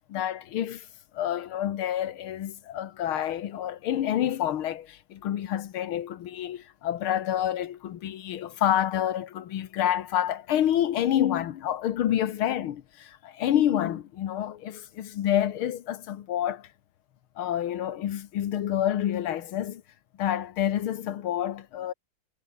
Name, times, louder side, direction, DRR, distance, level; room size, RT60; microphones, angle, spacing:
voice 1, 0.1-0.9 1.1-16.7 17.4-19.8 20.2-21.9, left 11 dB, 85° left, 2.0 m, -28 dB
omnidirectional pair, 2.3 m